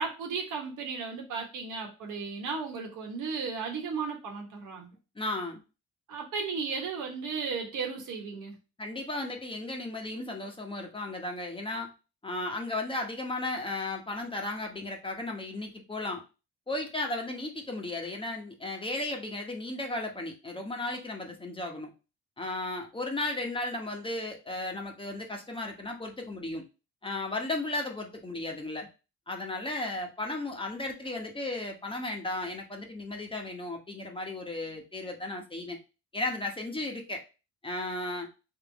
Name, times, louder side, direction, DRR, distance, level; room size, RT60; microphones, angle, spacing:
voice 1, 0.0-4.9 6.1-8.6, right 5 dB, 80° right, 1 dB, 1.4 m, -35 dB
voice 2, 5.1-5.6 8.8-11.9 12.2-16.2 16.7-21.9 22.4-26.6 27.0-28.9 29.3-35.8 36.1-37.2 37.6-38.3, left 2 dB, 15° left, 2 dB, 1.0 m, -35 dB
3.6 x 3.2 x 3.4 m, 0.30 s
cardioid pair, 90°, 30 cm